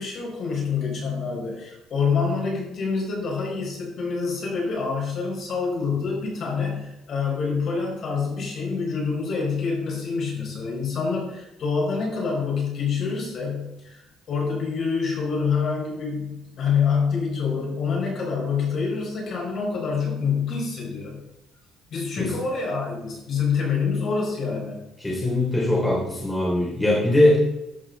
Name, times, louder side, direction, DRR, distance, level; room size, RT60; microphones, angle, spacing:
voice 1, 0.0-21.2 21.9-24.8, left 5 dB, 50° left, -2 dB, 5.0 m, -26 dB
voice 2, 25.0-27.4, left 1 dB, 10° left, -4 dB, 3.3 m, -21 dB
13.0 x 8.8 x 4.0 m, 0.92 s
cardioid pair, 140°, 0 cm